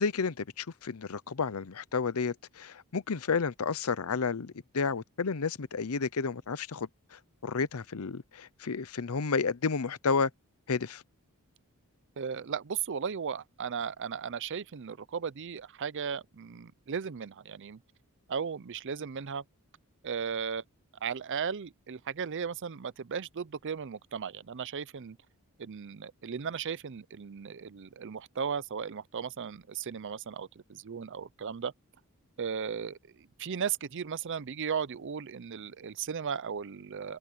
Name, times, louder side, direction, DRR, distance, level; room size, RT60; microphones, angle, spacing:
voice 1, 0.0-6.9 7.4-10.3 10.7-11.0, left 5 dB, 75° left, 0.7 m, -31 dB
voice 2, 12.2-17.8 18.3-19.4 20.0-20.6 21.0-25.2 25.6-31.7 32.4-33.0 33.4-37.2, right 6 dB, 55° right, 0.5 m, -36 dB
head